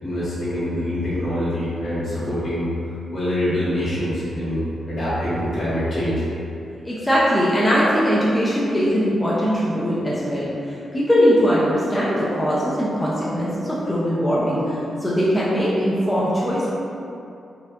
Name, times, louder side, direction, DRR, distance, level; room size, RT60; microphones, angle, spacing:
voice 1, 0.0-2.7 3.1-6.3, left 1 dB, 65° left, -11 dB, 1.4 m, -25 dB
voice 2, 6.8-16.7, equal, 10° left, -8 dB, 0.5 m, -20 dB
4.3 x 2.5 x 2.4 m, 2.7 s
cardioid pair, 95°, 0 cm